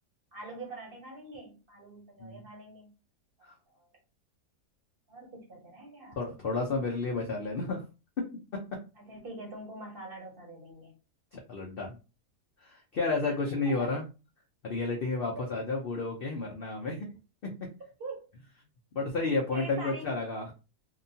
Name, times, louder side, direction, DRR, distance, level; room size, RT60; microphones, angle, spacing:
voice 1, 0.3-2.9 3.4-3.9 5.1-6.2 9.0-10.9 13.2-13.4 13.6-13.9 15.4-15.5 18.0-18.3 19.5-20.1, right 2 dB, 45° right, 0 dB, 0.9 m, -44 dB
voice 2, 6.1-7.8 8.2-8.3 8.5-8.8 11.3-12.0 12.6-14.0 14.6-17.1 17.4-17.7 18.9-20.5, left 3 dB, 70° left, 0 dB, 0.5 m, -31 dB
2.8 x 2.2 x 2.6 m, 0.30 s
omnidirectional pair, 1.7 m